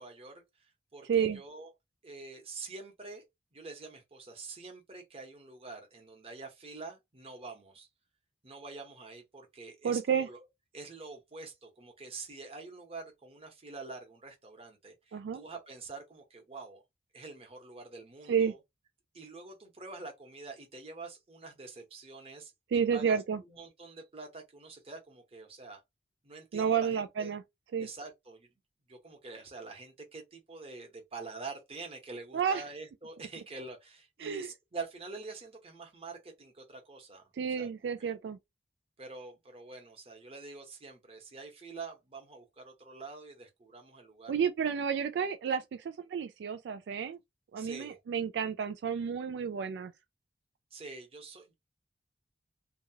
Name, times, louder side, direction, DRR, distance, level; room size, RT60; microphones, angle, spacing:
voice 1, 0.0-1.7 2.0-3.2 3.5-7.9 8.4-10.4 10.7-16.8 17.1-18.6 19.1-22.5 22.9-25.8 26.2-27.3 27.8-28.5 28.9-37.3 37.5-37.7 38.0-38.1 39.0-44.4 47.6-48.0 50.7-51.5, right 3 dB, 35° right, 1.0 m, -46 dB
voice 2, 1.1-1.4 9.8-10.3 15.1-15.4 18.3-18.5 22.7-23.4 26.5-27.4 27.7-27.9 32.3-32.6 34.2-34.5 37.3-38.4 44.3-47.2 47.5-49.9, right 7 dB, 70° right, 0.3 m, -31 dB
2.8 x 2.3 x 2.8 m
head